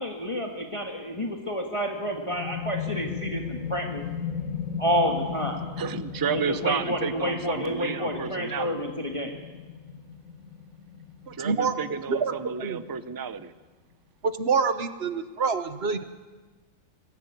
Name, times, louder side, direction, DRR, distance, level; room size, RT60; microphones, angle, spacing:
voice 1, 0.0-4.0 4.8-5.6 6.3-9.3, equal, 25° left, 2 dB, 1.7 m, -29 dB
sound 1, 2.0-13.4, left 7 dB, 80° left, 1.8 m, -37 dB
voice 2, 5.8-8.9 11.4-13.5, right 7 dB, 25° right, 13 dB, 0.5 m, -32 dB
voice 3, 11.3-11.8 12.1-12.8 14.2-16.0, right 5 dB, 55° right, 10 dB, 1.3 m, -27 dB
21.5 x 14.5 x 9.2 m, 1.3 s
omnidirectional pair, 1.4 m